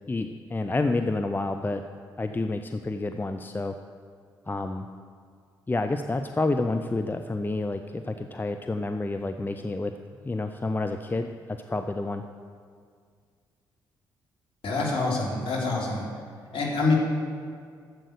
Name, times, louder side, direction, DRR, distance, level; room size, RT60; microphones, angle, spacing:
voice 1, 0.1-1.8 2.2-3.7 4.5-4.9 5.7-9.9 10.2-11.3 11.7-12.2, left 2 dB, 20° left, 7 dB, 0.6 m, -29 dB
voice 2, 14.6-16.1 16.5-16.9, left 3 dB, 55° left, -4 dB, 3.7 m, -26 dB
12.5 x 7.7 x 6.7 m, 2.1 s
figure-of-eight pair, 40°, 11 cm